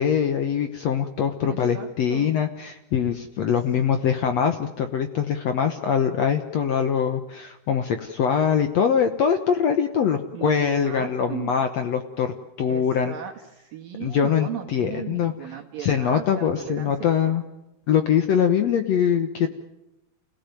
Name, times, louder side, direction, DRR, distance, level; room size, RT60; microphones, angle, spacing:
voice 1, 0.0-13.1 14.0-15.3 15.8-17.4 17.9-19.5, left 7 dB, 70° left, 8 dB, 1.6 m, -23 dB
voice 2, 1.5-2.3 10.3-11.5 12.7-17.3, right 9 dB, 65° right, 0 dB, 3.4 m, -36 dB
29.0 x 16.5 x 9.2 m, 0.97 s
omnidirectional pair, 4.4 m